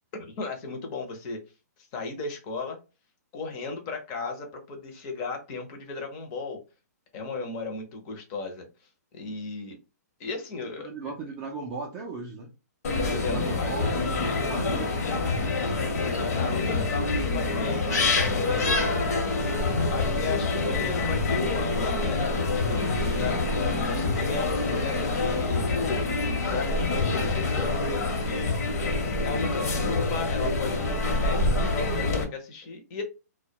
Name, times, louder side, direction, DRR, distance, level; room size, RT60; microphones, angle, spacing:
voice 1, 0.1-1.4 1.9-2.8 3.3-6.6 7.1-8.7 9.1-9.8 10.2-10.9 13.0-13.7 16.3-18.8 19.9-26.0 26.4-28.5 29.2-33.0, left 4 dB, 25° left, 0.6 m, -35 dB
voice 2, 10.8-12.5 13.3-14.0 14.4-15.0, right 4 dB, 20° right, 0.3 m, -37 dB
sound 1, 12.8-32.2, left 3 dB, 60° left, 0.9 m, -26 dB
2.2 x 2.1 x 2.7 m
hypercardioid pair, 165°, 9 cm